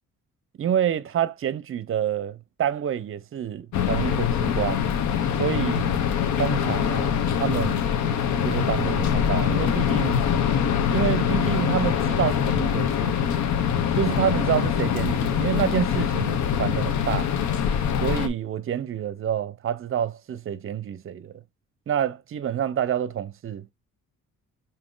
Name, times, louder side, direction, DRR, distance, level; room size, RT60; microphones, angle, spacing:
voice 1, 0.6-4.8 5.4-5.9 6.4-7.8 8.4-10.2 10.9-13.2 13.9-17.3 18.0-21.3 21.9-23.7, right 9 dB, 45° right, 0.6 m, -28 dB
sound 1, 3.7-18.3, left 8 dB, 70° left, 0.8 m, -24 dB
5.1 x 2.8 x 3.7 m
cardioid pair, 90°, 30 cm